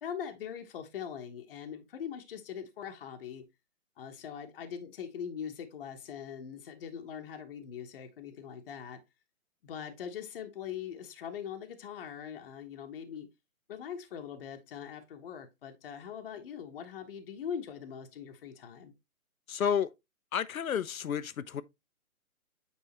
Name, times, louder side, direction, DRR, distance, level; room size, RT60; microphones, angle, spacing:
voice 1, 0.0-3.4 4.0-9.0 9.6-13.3 13.7-18.9, left 8 dB, 40° left, 1.2 m, -42 dB
voice 2, 19.5-19.9 20.3-21.6, left 8 dB, 70° left, 0.8 m, -31 dB
9.0 x 3.6 x 3.0 m
hypercardioid pair, 150°, 43 cm